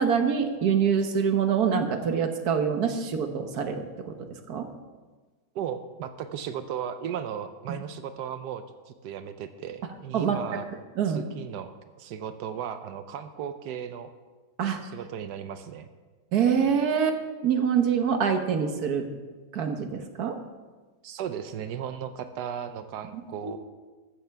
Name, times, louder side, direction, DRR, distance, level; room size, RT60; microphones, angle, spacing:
voice 1, 0.0-4.7 7.7-7.8 10.1-10.6 11.0-11.2 14.6-14.8 16.3-17.2 17.4-19.1 19.5-20.4 23.1-23.6, right 7 dB, 70° right, 6 dB, 1.6 m, -25 dB
voice 2, 5.5-10.6 11.1-11.7 12.0-14.1 14.8-15.9 21.0-23.6, right 8 dB, 90° right, 9 dB, 1.3 m, -36 dB
14.0 x 14.0 x 3.4 m, 1.3 s
omnidirectional pair, 1.7 m